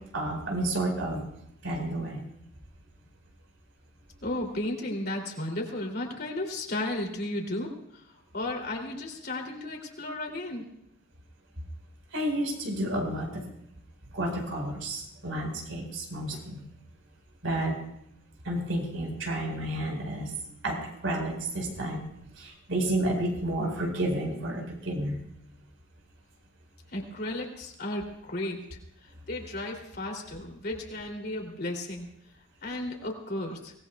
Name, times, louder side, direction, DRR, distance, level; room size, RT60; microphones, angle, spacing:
voice 1, 0.1-1.2 1.6-2.2 12.1-13.4 14.1-16.6 17.4-17.8 18.4-20.3 20.6-22.0 22.4-25.2, right 1 dB, 80° right, 1 dB, 4.8 m, -31 dB
voice 2, 4.2-8.0 8.3-10.6 26.9-28.8 29.3-32.1 32.6-33.7, left 1 dB, 50° left, 0 dB, 3.0 m, -34 dB
25.0 x 18.5 x 2.4 m, 0.77 s
head